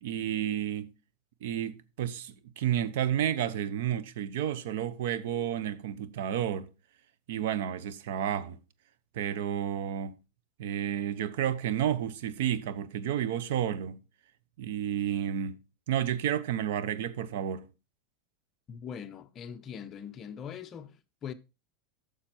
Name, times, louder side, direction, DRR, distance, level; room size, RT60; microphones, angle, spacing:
voice 1, 0.0-0.9 1.4-6.7 7.3-8.6 9.1-10.2 10.6-14.0 14.6-15.6 15.9-17.7, right 10 dB, 75° right, 0.9 m, -31 dB
voice 2, 18.7-21.3, left 8 dB, 30° left, 0.8 m, -42 dB
10.0 x 6.7 x 4.4 m
supercardioid pair, 140°, 0 cm